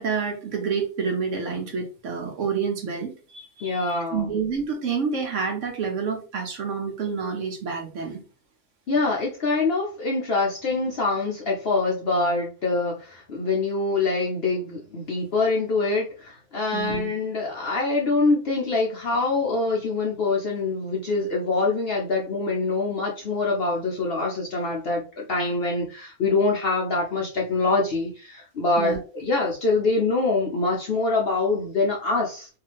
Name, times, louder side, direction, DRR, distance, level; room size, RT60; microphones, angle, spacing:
voice 1, 0.0-8.2 16.7-17.1 28.8-29.0, right 5 dB, 65° right, 3 dB, 0.9 m, -28 dB
voice 2, 3.6-4.3 8.9-32.5, left 3 dB, 60° left, -2 dB, 0.6 m, -25 dB
2.7 x 2.4 x 2.8 m, 0.35 s
omnidirectional pair, 1.5 m